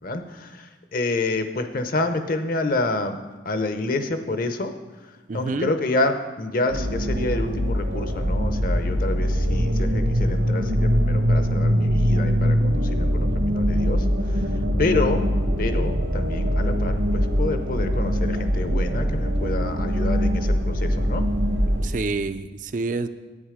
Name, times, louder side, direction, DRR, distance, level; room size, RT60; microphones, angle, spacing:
voice 1, 0.0-3.2 3.4-4.7 5.3-14.0 14.8-15.2 15.6-21.3, left 2 dB, 45° left, 8 dB, 0.8 m, -28 dB
voice 2, 5.3-5.7 21.8-23.1, right 3 dB, 45° right, 11 dB, 0.4 m, -28 dB
sound 1, 6.7-21.8, equal, 80° right, 1.6 m, -22 dB
11.0 x 9.0 x 4.9 m, 1.2 s
head